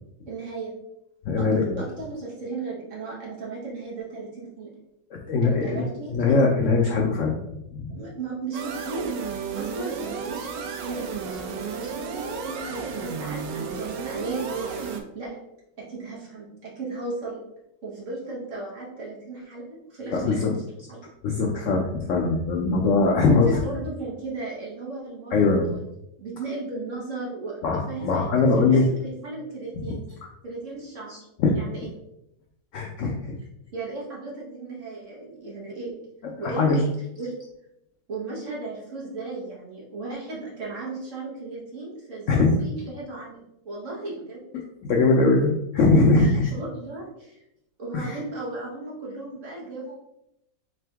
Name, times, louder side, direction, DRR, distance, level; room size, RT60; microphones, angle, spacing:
voice 1, 0.3-0.7 1.4-1.5 1.8-4.7 5.4-6.1 7.9-9.2 9.6-15.4 15.8-17.4 17.8-20.5 20.9-21.0 23.0-25.8 26.2-28.1 28.7-30.0 30.4-31.1 31.5-31.9 33.7-36.0 36.4-36.7 37.2-37.3 38.1-44.4 46.2-47.4 47.8-50.0, right 3 dB, 45° right, -5 dB, 1.5 m, -35 dB
voice 2, 1.2-1.9 5.1-8.0 20.1-20.6 21.2-23.6 25.3-25.8 27.6-28.9 29.8-30.0 30.2-30.3 31.1-31.6 32.7-33.3 36.2-36.9 42.3-42.5 44.5-46.5 47.9-48.2, left 3 dB, 85° left, 1 dB, 0.6 m, -22 dB
sound 1, 8.5-15.0, right 6 dB, 85° right, 1.3 m, -33 dB
3.8 x 3.4 x 3.4 m, 0.82 s
omnidirectional pair, 1.9 m